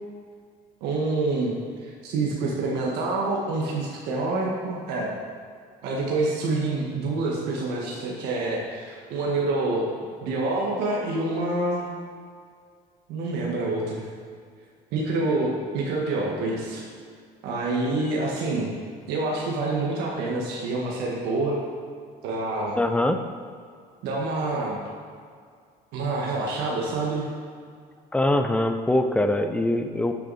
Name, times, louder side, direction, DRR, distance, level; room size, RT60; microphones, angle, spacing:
voice 1, 0.8-1.5 1.8-5.1 5.8-9.9 10.2-11.9 13.1-14.1 14.9-16.8 17.4-18.7 19.1-21.6 22.2-22.8 24.0-24.8 25.9-27.2, right 2 dB, 85° right, -3 dB, 1.6 m, -27 dB
voice 2, 22.8-23.2 28.1-30.1, left 1 dB, 5° left, 7 dB, 0.6 m, -23 dB
11.5 x 6.6 x 4.2 m, 2.2 s
cardioid pair, 130°, 17 cm